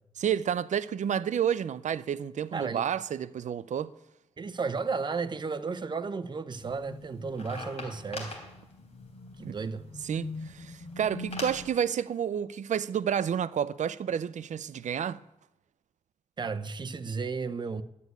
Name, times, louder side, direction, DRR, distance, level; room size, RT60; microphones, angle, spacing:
voice 1, 0.2-3.9 9.4-9.6 10.0-15.2, right 8 dB, 85° right, 0.5 m, -30 dB
voice 2, 2.5-2.8 4.4-8.4 9.4-9.9 16.4-17.8, right 4 dB, 40° right, 0.7 m, -33 dB
sound 1, 6.6-11.7, left 2 dB, 60° left, 3.6 m, -41 dB
12.0 x 9.4 x 9.3 m
wide cardioid pair, 155°, 12 cm